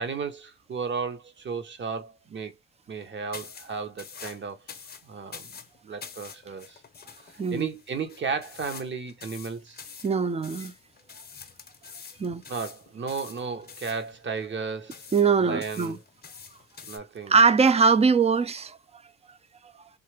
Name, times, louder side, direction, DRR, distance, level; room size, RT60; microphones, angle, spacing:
voice 1, 0.0-2.5 2.9-4.6 5.0-5.5 5.8-6.8 7.2-9.8 12.5-15.1 15.4-16.0 16.9-17.3, right 5 dB, 40° right, 0.9 m, -34 dB
sound 1, 3.3-17.0, left 6 dB, 30° left, 0.7 m, -46 dB
voice 2, 10.0-10.7 12.2-12.4 15.1-16.0 17.3-18.8, right 5 dB, 20° right, 0.4 m, -21 dB
2.8 x 2.4 x 3.2 m
cardioid pair, 90°, 30 cm